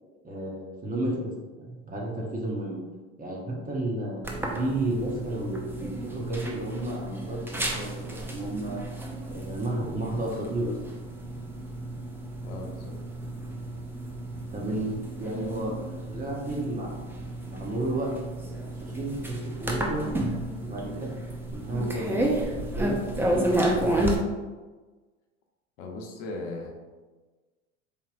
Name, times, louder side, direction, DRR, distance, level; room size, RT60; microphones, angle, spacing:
voice 1, 0.2-1.3 1.6-2.8 3.2-8.8 9.3-10.7 14.5-15.8 16.1-18.1 18.8-20.1 20.6-21.1 21.5-22.2 22.6-23.9, right 1 dB, 20° right, -1 dB, 1.0 m, -32 dB
sound 1, 4.2-24.2, right 1 dB, 5° right, 0.5 m, -32 dB
voice 2, 12.4-13.0 25.8-26.8, left 2 dB, 60° left, 1 dB, 0.9 m, -38 dB
4.2 x 3.6 x 2.5 m, 1.3 s
hypercardioid pair, 90°, 39 cm